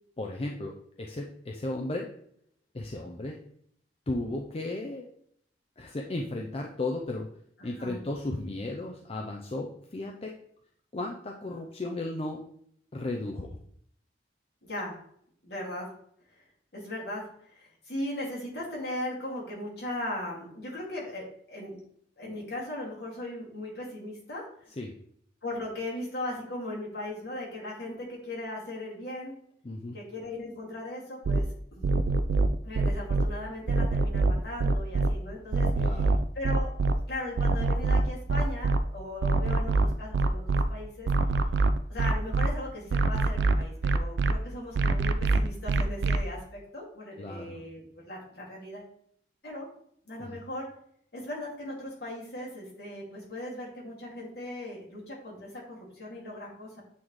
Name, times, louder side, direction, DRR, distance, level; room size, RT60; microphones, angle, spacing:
voice 1, 0.2-2.1 2.7-3.4 4.1-5.1 5.8-7.3 7.6-10.4 10.9-12.4 12.9-13.6 24.8-24.9 29.6-30.0 35.8-36.2 47.2-47.6 50.2-50.4, left 2 dB, 35° left, 1 dB, 0.5 m, -35 dB
voice 2, 7.6-8.0 14.6-15.0 15.4-15.9 16.7-21.8 22.2-24.7 25.4-29.4 29.9-31.5 31.7-31.9 32.6-36.0 36.3-36.7 37.1-41.1 41.9-48.9 49.4-49.7 50.1-50.7 51.1-56.8, left 1 dB, 60° left, -3 dB, 2.2 m, -38 dB
sound 1, 31.3-31.4 31.8-33.3 33.7-35.1 35.5-36.9 37.4-38.8 39.2-40.6 41.1-42.5 42.9-44.3 44.8-46.2, right 3 dB, 75° right, 0.4 m, -24 dB
8.3 x 3.1 x 3.7 m, 0.65 s
head